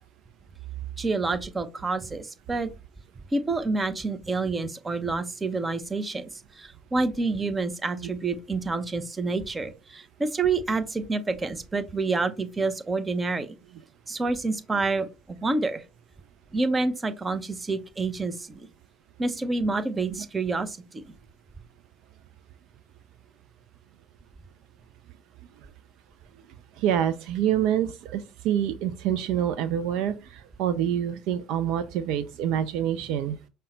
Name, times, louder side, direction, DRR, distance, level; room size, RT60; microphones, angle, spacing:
voice 1, 1.0-2.7 3.3-6.3 6.6-13.5 14.1-15.8 16.5-18.7 19.2-21.0, right 3 dB, 20° right, 0.6 m, -28 dB
voice 2, 26.8-33.4, right 10 dB, 60° right, 0.4 m, -26 dB
5.4 x 2.1 x 3.8 m
hypercardioid pair, 70°, 0 cm